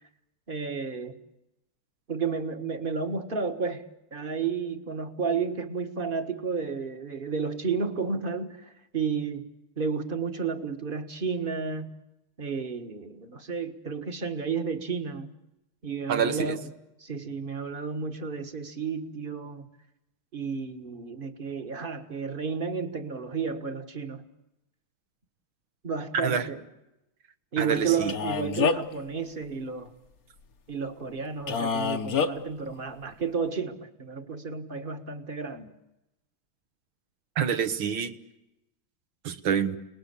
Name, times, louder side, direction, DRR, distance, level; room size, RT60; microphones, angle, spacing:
voice 1, 0.5-1.2 2.1-9.5 9.8-11.9 12.4-15.3 15.8-16.7 17.0-19.6 20.3-24.2 25.8-26.6 27.5-29.9 30.7-35.7, right 5 dB, 25° right, 7 dB, 1.6 m, -32 dB
voice 2, 16.1-16.6 26.1-26.5 27.6-28.1 37.4-38.2 39.2-39.8, right 7 dB, 65° right, 10 dB, 2.0 m, -27 dB
Male speech man speaking, 28.1-29.0 31.5-32.3, left 6 dB, 50° left, 1.4 m, -26 dB
29.5 x 20.0 x 8.4 m, 0.93 s
omnidirectional pair, 2.4 m